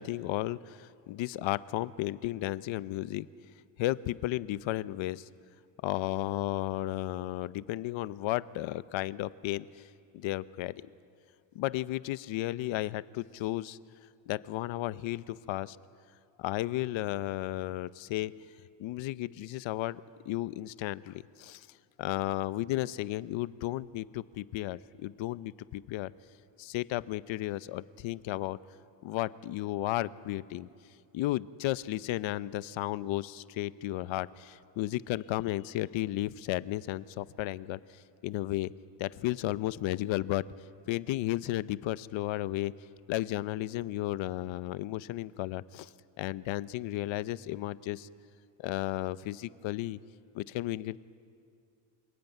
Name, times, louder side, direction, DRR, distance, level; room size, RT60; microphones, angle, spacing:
voice 1, 0.0-3.3 3.8-5.3 5.8-9.9 10.1-10.8 11.5-13.8 14.3-15.8 16.4-18.3 18.8-21.7 22.0-26.1 26.6-28.6 29.0-30.7 31.1-37.8 38.2-38.7 39.0-40.4 40.9-42.7 43.1-45.9 46.2-48.1 48.6-50.0 50.3-51.0, left 16 dB, 90° left, 16 dB, 0.8 m, -33 dB
28.0 x 19.5 x 9.2 m, 2.5 s
cardioid pair, 105°, 45 cm